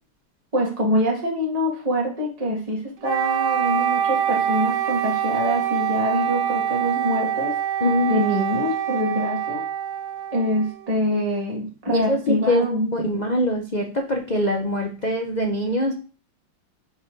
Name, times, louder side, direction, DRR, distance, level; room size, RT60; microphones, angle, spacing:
voice 1, 0.5-7.5 8.1-9.6 10.3-12.9, equal, 20° right, -3 dB, 1.9 m, -25 dB
Wind instrument woodwind instrument, 3.0-11.1, right 9 dB, 65° right, 1.4 m, -25 dB
voice 2, 7.8-8.2 11.9-12.6 12.9-15.9, left 1 dB, 75° left, 2 dB, 0.4 m, -23 dB
6.0 x 4.5 x 3.8 m, 0.36 s
omnidirectional pair, 2.2 m